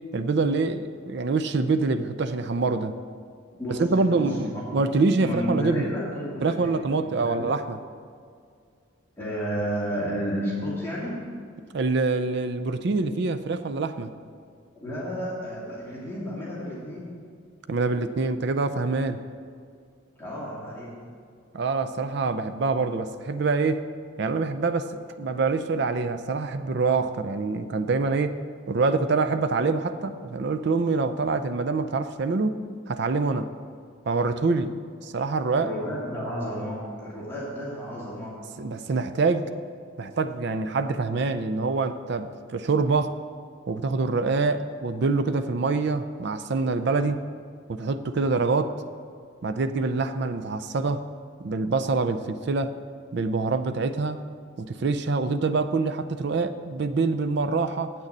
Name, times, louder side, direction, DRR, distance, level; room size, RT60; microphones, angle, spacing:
voice 1, 0.1-3.0 3.7-5.9 6.4-7.8 11.7-14.1 17.7-19.2 21.5-23.8 24.2-28.3 28.7-32.6 32.9-33.5 34.1-34.7 35.0-35.7 38.6-39.5 40.0-43.2 43.7-47.2 47.7-48.7 49.4-51.0 51.4-52.7 53.1-54.2 54.7-57.9, right 3 dB, 55° right, 10 dB, 0.4 m, -25 dB
voice 2, 4.1-4.6 5.2-7.5 9.2-11.2 14.8-17.0 20.2-20.9 35.6-38.3, equal, 10° left, -8 dB, 2.3 m, -32 dB
8.4 x 6.5 x 7.3 m, 2.2 s
head